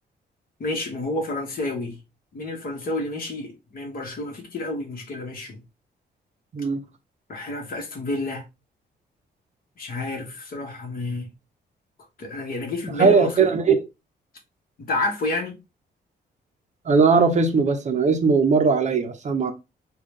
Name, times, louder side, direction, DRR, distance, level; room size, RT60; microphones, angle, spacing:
voice 1, 0.6-2.0 2.3-5.6 7.3-8.4 9.8-11.3 12.2-13.6 14.8-15.6, left 2 dB, 55° left, 1.2 m, -30 dB
voice 2, 13.0-13.8 16.9-19.5, right 5 dB, 40° right, 0.6 m, -19 dB
3.8 x 2.3 x 3.2 m
cardioid pair, 135°, 18 cm